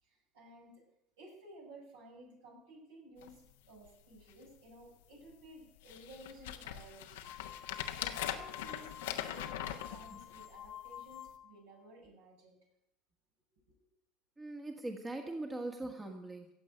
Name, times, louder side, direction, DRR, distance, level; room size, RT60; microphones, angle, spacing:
voice 1, 0.0-0.8 1.2-7.2 8.0-12.6, right 1 dB, 70° right, -2 dB, 6.8 m, -55 dB
sound 1, 3.2-3.3 3.9-4.0 4.2-4.7 5.3-5.4 5.8-10.7 11.3-11.4, left 11 dB, 70° left, 1.2 m, -41 dB
sound 2, 7.2-11.6, left 10 dB, 45° left, 0.4 m, -50 dB
voice 2, 14.4-16.5, right 2 dB, 20° right, 3 dB, 1.8 m, -41 dB
16.0 x 7.8 x 9.0 m, 0.83 s
figure-of-eight pair, 70°, 0 cm